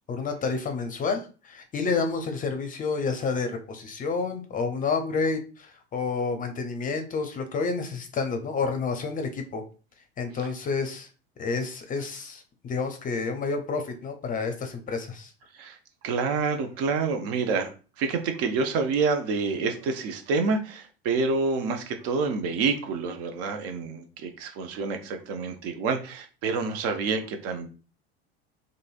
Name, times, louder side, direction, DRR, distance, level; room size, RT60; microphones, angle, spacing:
voice 1, 0.1-9.6 10.2-11.1 11.4-15.3, left 4 dB, 25° left, 6 dB, 0.6 m, -29 dB
voice 2, 16.0-17.7 18.0-27.7, right 4 dB, 50° right, 6 dB, 0.6 m, -28 dB
3.0 x 2.5 x 2.4 m, 0.35 s
hypercardioid pair, 75°, 32 cm